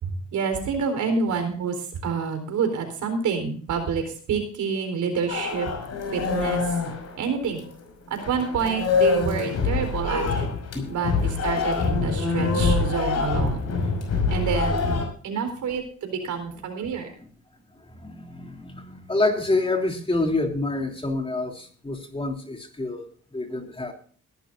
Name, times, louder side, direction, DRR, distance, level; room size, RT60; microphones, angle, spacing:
voice 1, 0.0-5.7 6.1-6.6 7.2-7.6 8.1-10.5 10.9-13.6 14.3-15.0 15.2-17.1, right 5 dB, 75° right, 7 dB, 4.0 m, -28 dB
sound 1, 5.3-7.8 8.2-15.0, left 4 dB, 55° left, 5.5 m, -25 dB
voice 2, 17.9-23.1 23.3-23.9, left 2 dB, 20° left, 3 dB, 3.2 m, -27 dB
20.5 x 12.5 x 2.6 m, 0.43 s
cardioid pair, 90°, 30 cm